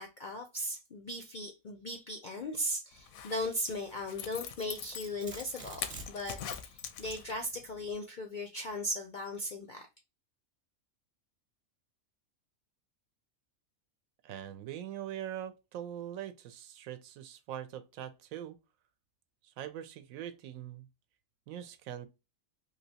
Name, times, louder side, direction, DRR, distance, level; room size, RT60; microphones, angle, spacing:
voice 1, 0.0-9.9, left 1 dB, 65° left, 0.4 m, -38 dB
Zipper (clothing), 3.0-7.6 7.9-8.0, left 9 dB, 85° left, 1.0 m, -43 dB
Domestic sounds home sounds, 4.8-6.5, right 3 dB, 45° right, 1.0 m, -47 dB
voice 2, 14.2-18.6 19.6-20.9 21.5-22.1, right 10 dB, 80° right, 1.0 m, -42 dB
3.2 x 2.8 x 2.7 m
omnidirectional pair, 1.4 m